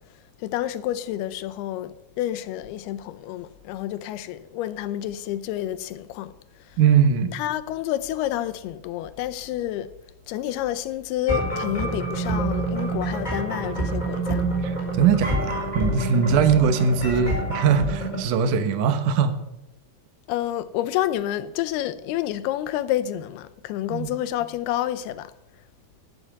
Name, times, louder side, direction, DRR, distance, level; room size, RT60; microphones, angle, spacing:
voice 1, 0.4-6.3 7.3-9.9 10.3-14.5 20.3-25.3, left 13 dB, 85° left, 2.7 m, -29 dB
voice 2, 6.8-7.4 14.6-19.3 23.9-24.1, right 6 dB, 65° right, 2.3 m, -21 dB
sound 1, 11.3-18.2, right 2 dB, 10° left, 4.5 m, -27 dB
12.0 x 11.5 x 7.9 m
omnidirectional pair, 4.6 m